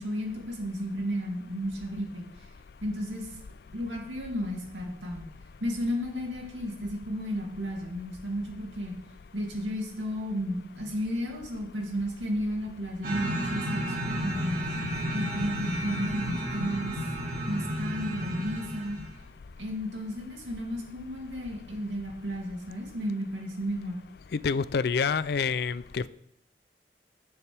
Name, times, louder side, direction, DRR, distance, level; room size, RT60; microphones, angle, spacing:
voice 1, 0.0-2.3 2.8-3.3 3.7-5.3 5.6-9.0 9.3-14.6 15.1-17.0 17.5-19.0 19.6-24.0, equal, 85° right, 2.5 m, -33 dB
sound 1, 13.0-19.2, equal, 50° right, 2.4 m, -32 dB
voice 2, 24.3-26.1, left 5 dB, 60° left, 0.4 m, -27 dB
14.5 x 7.2 x 3.4 m
head